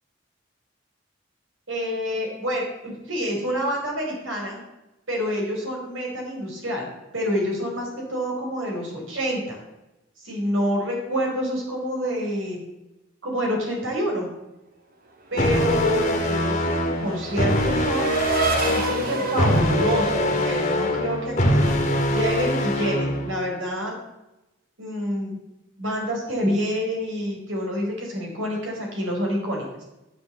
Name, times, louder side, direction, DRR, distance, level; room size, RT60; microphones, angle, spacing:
voice 1, 1.7-4.6 5.1-9.6 10.2-12.6 13.2-14.3 15.3-18.1 18.6-23.9 24.8-25.4 25.8-29.8, equal, 75° right, 0 dB, 4.5 m, -27 dB
sound 1, 15.3-23.3, left 1 dB, 35° left, 1.8 m, -23 dB
Race car auto racing / Accelerating revving vroom, 15.9-21.5, right 2 dB, 50° right, 1.9 m, -29 dB
11.5 x 7.4 x 7.4 m, 0.96 s
head